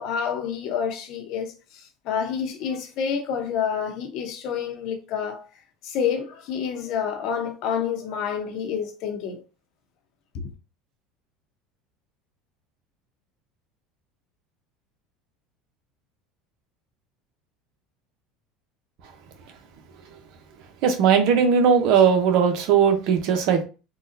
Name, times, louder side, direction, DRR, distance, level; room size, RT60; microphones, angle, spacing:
voice 1, 0.0-5.4 5.8-9.4 10.3-10.5, left 7 dB, 60° left, 0.8 m, -28 dB
voice 2, 20.8-23.6, right 7 dB, 65° right, 0.9 m, -18 dB
3.8 x 2.4 x 2.6 m
supercardioid pair, 115°, 0 cm